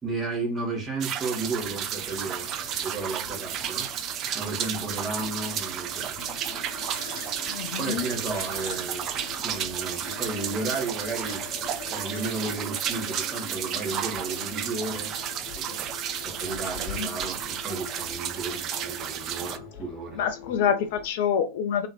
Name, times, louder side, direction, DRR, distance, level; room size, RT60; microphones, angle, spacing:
voice 1, 0.0-7.0 7.8-9.1 9.4-11.4 11.9-15.2 15.5-15.8 16.2-20.2, right 3 dB, 15° right, 1.3 m, -33 dB
sound 1, 1.0-19.6, right 9 dB, 35° right, 0.4 m, -32 dB
sound 2, 1.4-21.1, left 5 dB, 35° left, 1.0 m, -44 dB
sound 3, 3.7-3.8 5.0-5.1 6.5-9.9 10.3-10.4 11.3-11.4 11.8-12.4 12.9-13.0 13.8-13.9 14.7-14.8 15.1-15.2 15.6-15.7 16.0-17.0, left 2 dB, 75° left, 1.3 m, -46 dB
voice 2, 7.5-8.0 17.0-17.1 20.2-21.9, left 8 dB, 50° left, 0.4 m, -26 dB
3.0 x 2.8 x 2.2 m
figure-of-eight pair, 90°, 0 cm